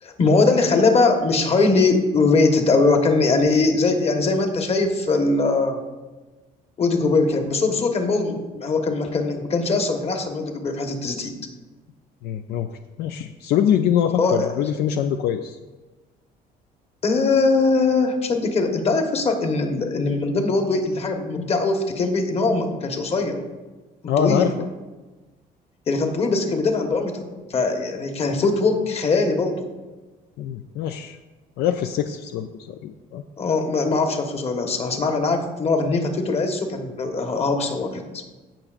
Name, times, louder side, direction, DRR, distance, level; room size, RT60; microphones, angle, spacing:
voice 1, 0.0-5.8 6.8-11.3 14.2-14.6 17.0-23.4 24.0-24.6 25.9-27.2 27.5-29.6 33.4-38.2, left 3 dB, 35° left, 4 dB, 1.3 m, -21 dB
voice 2, 12.2-12.7 13.0-15.6 24.1-24.5 30.4-31.2 31.6-33.2, left 9 dB, 75° left, 7 dB, 0.5 m, -23 dB
16.5 x 5.9 x 2.5 m, 1.2 s
cardioid pair, 110°, 17 cm